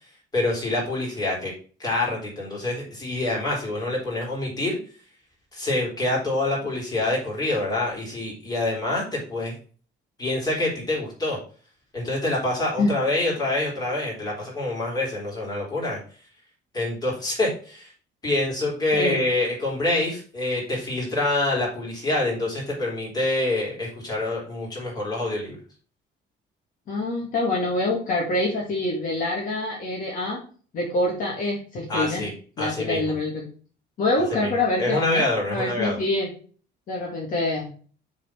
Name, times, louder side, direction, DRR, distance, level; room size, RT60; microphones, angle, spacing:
voice 1, 0.3-1.5 1.8-4.8 5.5-9.5 10.2-11.4 11.9-16.0 16.7-17.9 18.2-25.6 31.9-32.3 32.6-33.1 34.3-34.5 34.8-36.0, left 2 dB, 20° left, -4 dB, 3.9 m, -26 dB
voice 2, 26.9-30.4 30.7-32.2 32.6-33.5 34.0-35.2 35.5-36.3 36.9-37.6, left 2 dB, 45° left, -3 dB, 2.3 m, -25 dB
7.1 x 4.5 x 5.7 m, 0.40 s
cardioid pair, 175°, 19 cm